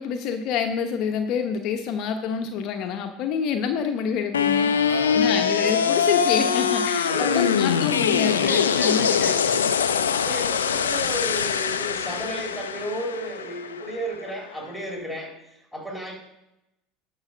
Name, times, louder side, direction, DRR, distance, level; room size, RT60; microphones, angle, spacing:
voice 1, 0.0-9.1, left 7 dB, 55° left, 5 dB, 0.9 m, -27 dB
sound 1, 4.3-14.4, left 7 dB, 90° left, 0.5 m, -23 dB
voice 2, 4.7-5.4 7.1-7.6 8.4-9.7 10.1-16.1, equal, 5° right, -1 dB, 4.0 m, -33 dB
11.5 x 4.9 x 6.2 m, 0.90 s
hypercardioid pair, 80°, 0 cm